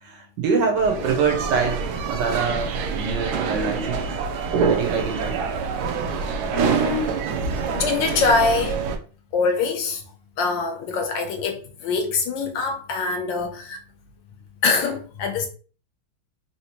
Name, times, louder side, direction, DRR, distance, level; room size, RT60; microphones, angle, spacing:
voice 1, 0.0-4.0 4.6-5.4, right 5 dB, 70° right, 1.2 m, -25 dB
sound 1, 0.8-9.0, right 5 dB, 85° right, 0.8 m, -26 dB
voice 2, 6.5-7.1 7.7-8.8 9.3-10.0 10.4-13.8 14.6-15.5, left 4 dB, 75° left, 1.2 m, -24 dB
3.5 x 2.8 x 2.9 m
omnidirectional pair, 2.3 m